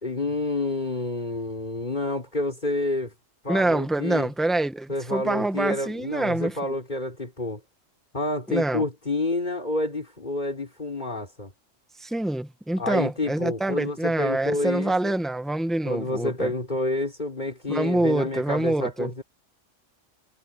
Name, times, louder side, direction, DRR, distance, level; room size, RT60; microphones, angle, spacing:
voice 1, 0.0-3.1 3.4-4.3 4.9-7.6 8.1-11.5 12.8-15.2 15.8-19.2, left 2 dB, 35° left, 4.6 m, -29 dB
voice 2, 3.5-6.8 8.5-8.8 12.0-16.5 17.7-19.1, right 2 dB, ahead, 1.2 m, -26 dB
omnidirectional pair, 1.3 m